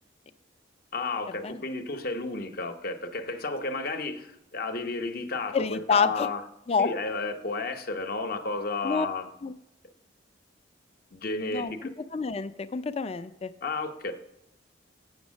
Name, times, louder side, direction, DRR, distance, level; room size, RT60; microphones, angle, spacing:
voice 1, 0.9-6.4 6.8-9.3 11.1-11.9 13.6-14.1, left 3 dB, 50° left, 7 dB, 0.8 m, -32 dB
voice 2, 5.5-6.3 6.7-6.9 8.8-9.1 9.4-9.5 11.5-11.7 12.1-13.5, left 5 dB, 35° left, 12 dB, 0.4 m, -27 dB
8.0 x 6.4 x 6.2 m, 0.85 s
head